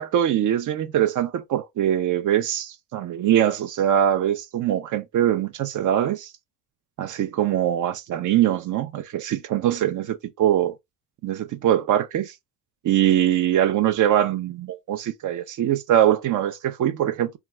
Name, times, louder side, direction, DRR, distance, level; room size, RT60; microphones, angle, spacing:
voice 1, 0.0-6.3 7.0-10.7 11.2-12.3 12.8-17.4, right 11 dB, 50° right, 0.5 m, -22 dB
2.3 x 2.3 x 2.8 m
cardioid pair, 85°, 40 cm